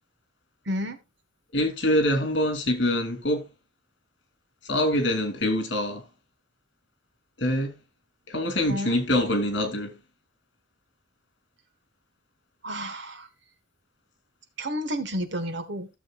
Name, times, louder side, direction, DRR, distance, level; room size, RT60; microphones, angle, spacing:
voice 1, 0.6-1.0 8.7-9.0 12.6-13.3 14.6-15.9, equal, 60° right, 1.5 m, -31 dB
voice 2, 1.5-3.5 4.6-6.0 7.4-7.7 8.3-10.0, left 1 dB, 60° left, 2.8 m, -25 dB
15.0 x 7.3 x 2.4 m
head